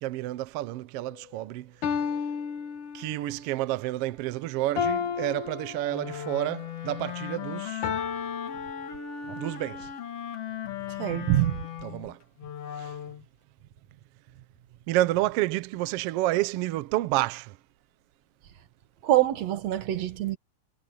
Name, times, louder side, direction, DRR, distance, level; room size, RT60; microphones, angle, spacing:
voice 1, 0.0-1.7 2.9-7.9 9.4-9.9 11.1-11.3 11.8-12.2 12.8-12.9 14.9-17.6, right 16 dB, 85° right, 1.3 m, -29 dB
sound 1, 1.1-1.2 1.8-3.4 4.8-6.4 7.8-9.4, left 7 dB, 85° left, 3.5 m, -32 dB
Wind instrument woodwind instrument, 5.9-13.2, left 9 dB, 55° left, 2.5 m, -37 dB
voice 2, 11.0-11.6 19.0-20.4, right 13 dB, 65° right, 2.4 m, -25 dB
omnidirectional pair, 3.5 m